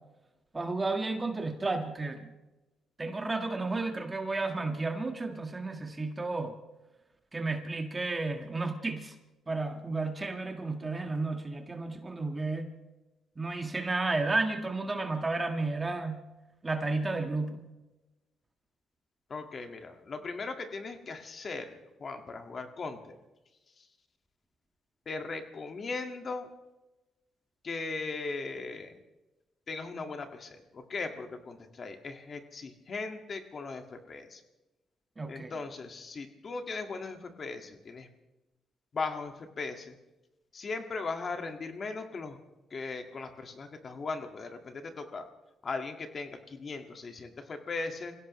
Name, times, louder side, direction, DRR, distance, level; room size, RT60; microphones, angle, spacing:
voice 1, 0.5-2.3 3.0-6.5 7.3-9.2 9.5-12.7 13.3-16.2 16.6-17.6 35.2-35.5, right 3 dB, 25° right, 4 dB, 1.7 m, -32 dB
voice 2, 19.3-23.2 25.1-26.5 27.6-29.0 29.7-34.4 35.3-38.1 38.9-39.9 40.5-42.4 42.7-45.2 45.6-48.1, left 4 dB, 45° left, 5 dB, 1.9 m, -38 dB
26.5 x 16.5 x 3.2 m, 1.1 s
cardioid pair, 90°, 0 cm